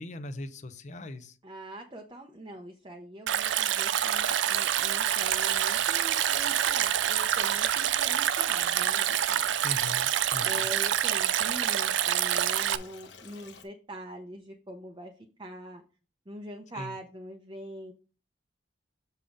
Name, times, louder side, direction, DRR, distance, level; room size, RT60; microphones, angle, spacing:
voice 1, 0.0-1.4 9.6-10.7 16.7-17.0, left 2 dB, 40° left, 10 dB, 0.6 m, -40 dB
voice 2, 1.4-9.5 10.4-15.1 15.4-15.8 16.3-17.9, right 1 dB, 25° right, 3 dB, 0.7 m, -43 dB
Stream, 3.3-12.8, right 10 dB, 80° right, 0.4 m, -27 dB
Stream 2, 5.1-13.6, left 5 dB, 75° left, 1.1 m, -51 dB
6.9 x 3.6 x 5.2 m, 0.35 s
head